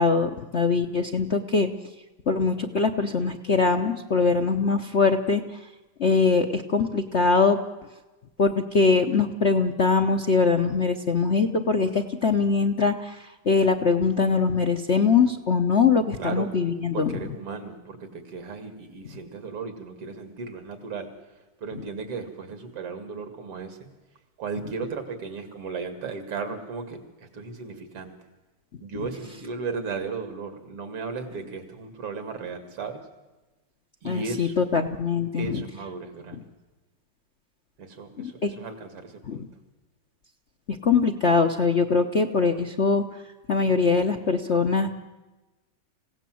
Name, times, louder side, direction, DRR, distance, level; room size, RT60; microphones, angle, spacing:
voice 1, 0.0-1.7 2.3-5.4 6.0-7.6 8.4-17.1 34.0-35.6 38.2-38.5 39.3-39.5 40.8-43.2 43.5-44.9, left 4 dB, 55° left, 7 dB, 0.7 m, -22 dB
voice 2, 16.2-16.6 16.9-21.1 21.6-23.9 24.4-28.2 28.8-33.0 34.0-34.6 35.3-36.5 37.8-39.5, right 4 dB, 90° right, 8 dB, 3.3 m, -35 dB
27.0 x 17.0 x 7.7 m, 1.1 s
omnidirectional pair, 2.4 m